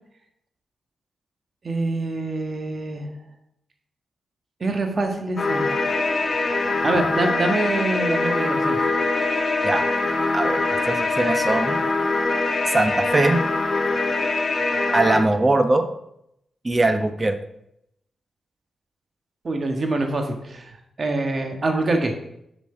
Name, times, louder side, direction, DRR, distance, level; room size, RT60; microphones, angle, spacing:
voice 1, 1.6-3.1 4.6-5.7 6.8-8.8 19.4-20.7 21.0-22.2, right 2 dB, 45° right, 4 dB, 1.6 m, -25 dB
sound 1, 5.4-15.2, left 3 dB, 45° left, 1.2 m, -23 dB
voice 2, 10.9-11.8 12.6-13.4 14.9-15.9 16.6-17.4, right 2 dB, 30° right, 8 dB, 1.0 m, -21 dB
7.2 x 6.1 x 4.5 m, 0.77 s
cardioid pair, 60°, 0 cm